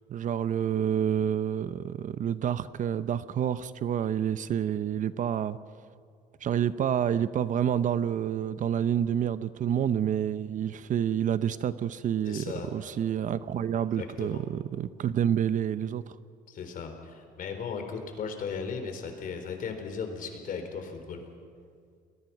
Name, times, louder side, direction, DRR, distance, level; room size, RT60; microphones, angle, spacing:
voice 1, 0.1-5.6 6.4-12.4 12.7-16.1, right 9 dB, 50° right, 14 dB, 0.8 m, -28 dB
voice 2, 12.3-12.7 13.7-14.4 16.5-21.2, left 5 dB, 55° left, 5 dB, 4.0 m, -37 dB
30.0 x 21.0 x 6.0 m, 2.2 s
cardioid pair, 110°, 17 cm